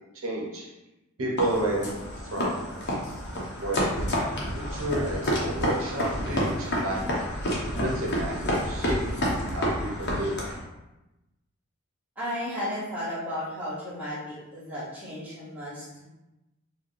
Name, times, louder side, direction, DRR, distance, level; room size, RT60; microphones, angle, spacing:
voice 1, 0.1-0.7 1.2-1.9 2.3-2.7 3.6-7.3 7.8-9.0 9.3-10.3, right 1 dB, 65° right, -2 dB, 0.7 m, -31 dB
sound 1, 1.4-10.6, equal, 50° left, 0.8 m, -29 dB
voice 2, 12.2-16.0, left 1 dB, 10° right, -10 dB, 1.3 m, -34 dB
4.4 x 2.2 x 3.1 m, 0.97 s
head